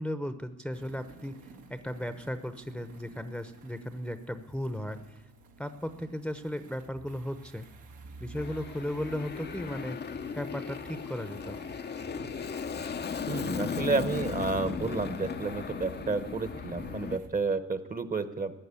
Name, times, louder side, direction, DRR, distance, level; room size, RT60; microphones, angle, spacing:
voice 1, 0.0-1.4 1.7-5.0 5.6-7.7 8.2-10.0 10.3-11.6, equal, 5° left, 10 dB, 0.9 m, -36 dB
sound 1, 0.7-17.3, right 3 dB, 80° right, 2.2 m, -52 dB
Aircraft, 8.4-17.2, left 6 dB, 35° left, 0.7 m, -36 dB
voice 2, 13.3-18.5, right 4 dB, 30° right, 13 dB, 1.1 m, -31 dB
15.5 x 9.9 x 8.3 m, 1.0 s
cardioid pair, 90°, 30 cm